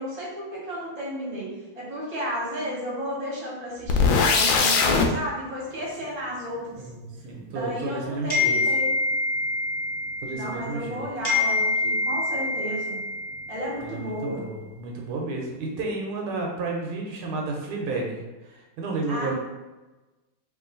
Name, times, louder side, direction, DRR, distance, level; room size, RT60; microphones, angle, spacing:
voice 1, 0.0-1.5 1.7-6.8 7.5-9.0 10.3-13.0 13.5-14.4 19.1-19.3, equal, 20° right, -6 dB, 1.2 m, -33 dB
sound 1, 3.9-5.1, left 4 dB, 75° left, 1.2 m, -20 dB
voice 2, 7.2-8.6 10.2-11.1 13.8-18.2 18.4-19.3, right 3 dB, 80° right, 0 dB, 1.5 m, -31 dB
sound 2, 8.3-10.9 11.2-13.8, left 3 dB, 20° left, 1.2 m, -26 dB
3.0 x 3.0 x 3.8 m, 1.1 s
omnidirectional pair, 2.3 m